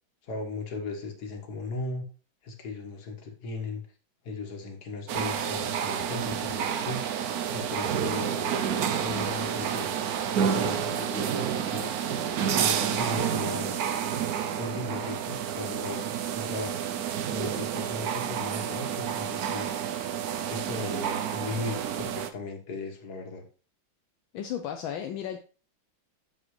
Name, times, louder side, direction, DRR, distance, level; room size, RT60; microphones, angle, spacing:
voice 1, 0.2-2.1 2.4-3.8 4.2-8.6 9.0-9.9 10.4-11.9 12.5-13.8 14.6-16.8 17.3-20.0 20.5-23.4, left 3 dB, 50° left, 3 dB, 2.0 m, -37 dB
sound 1, 5.1-22.3, right 8 dB, 65° right, 0.9 m, -29 dB
voice 2, 24.3-25.4, left 9 dB, 75° left, 5 dB, 1.5 m, -34 dB
8.1 x 7.1 x 3.2 m, 0.36 s
omnidirectional pair, 2.2 m